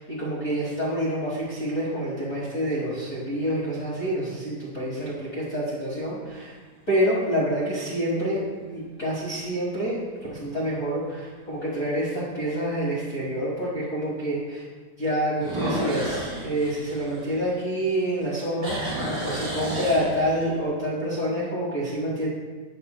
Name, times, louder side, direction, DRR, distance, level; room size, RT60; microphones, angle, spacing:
voice 1, 0.0-6.5 6.9-8.4 8.7-10.0 10.3-14.6 15.0-22.3, equal, 50° left, -9 dB, 0.9 m, -27 dB
sound 1, 1.7-2.4 3.0-3.1 8.4-8.8 9.3-9.4 10.0-10.1 10.3-10.4 11.9-12.0 15.3-17.9 18.2-20.6, right 1 dB, 50° right, 2.0 m, -32 dB
13.0 x 6.0 x 2.2 m, 1.4 s
omnidirectional pair, 4.0 m